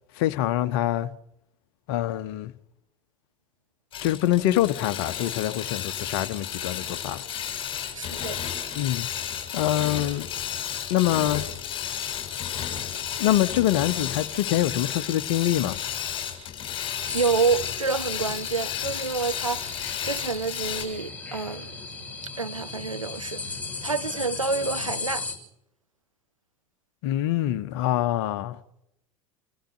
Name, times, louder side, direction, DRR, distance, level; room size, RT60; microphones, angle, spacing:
voice 1, 0.2-1.1 1.9-2.5 4.0-7.3 8.7-9.1 9.5-10.3 10.9-11.5 13.2-15.8 27.0-28.6, left 13 dB, 50° left, 1.2 m, -25 dB
sound 1, 3.9-20.8, left 9 dB, 35° left, 7.5 m, -33 dB
voice 2, 7.9-8.4 17.1-21.7 22.4-23.4 23.8-25.3, right 4 dB, 85° right, 0.7 m, -28 dB
sound 2, 17.1-25.3, left 3 dB, 10° left, 6.0 m, -36 dB
29.0 x 14.5 x 6.8 m
figure-of-eight pair, 75°, 16 cm